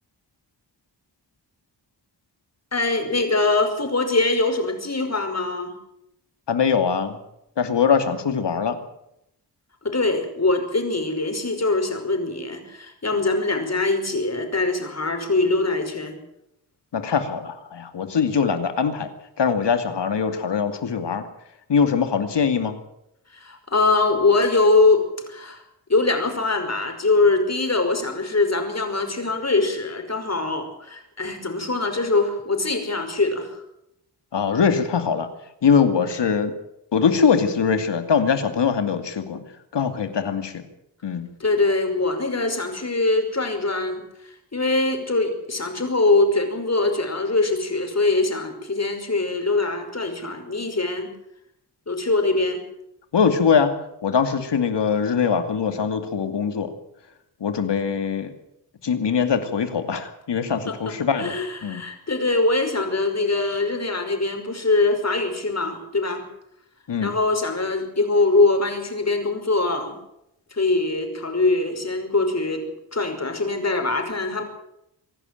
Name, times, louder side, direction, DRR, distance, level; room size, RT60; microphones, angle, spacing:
voice 1, 2.7-5.7 9.8-16.2 23.3-25.6 25.9-33.6 41.4-51.1 51.9-52.6 60.7-66.2 67.0-70.0 70.5-72.6 72.9-74.4, left 3 dB, 40° left, 6 dB, 5.6 m, -23 dB
voice 2, 6.5-7.2 7.6-8.8 16.9-19.1 19.4-21.3 21.7-22.8 34.3-35.3 35.6-36.5 36.9-39.4 39.7-40.6 41.0-41.3 53.1-53.7 54.0-56.7 57.4-58.3 58.8-61.3 61.6-61.8 66.9-67.1, left 6 dB, 80° left, 8 dB, 2.6 m, -22 dB
25.0 x 11.5 x 9.2 m, 0.82 s
cardioid pair, 65°, 41 cm